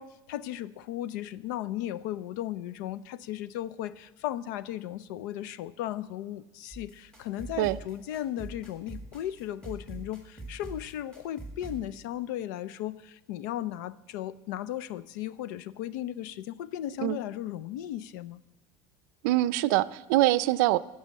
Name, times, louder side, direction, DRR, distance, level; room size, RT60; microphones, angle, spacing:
voice 1, 0.0-18.4, left 12 dB, 75° left, 17 dB, 0.5 m, -36 dB
sound 1, 6.7-11.8, right 2 dB, 5° left, 2.0 m, -44 dB
voice 2, 19.2-20.8, right 16 dB, 70° right, 15 dB, 0.4 m, -24 dB
14.5 x 6.2 x 7.5 m, 1.0 s
cardioid pair, 180°, 10 cm